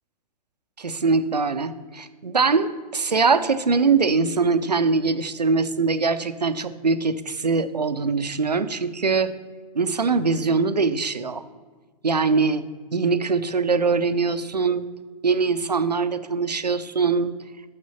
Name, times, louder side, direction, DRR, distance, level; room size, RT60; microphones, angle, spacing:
voice 1, 0.8-9.3 9.7-11.4 12.0-12.7 12.9-14.9 15.2-17.3, right 4 dB, 80° right, 12 dB, 0.6 m, -22 dB
6.7 x 6.4 x 7.1 m, 1.4 s
figure-of-eight pair, 110°, 21 cm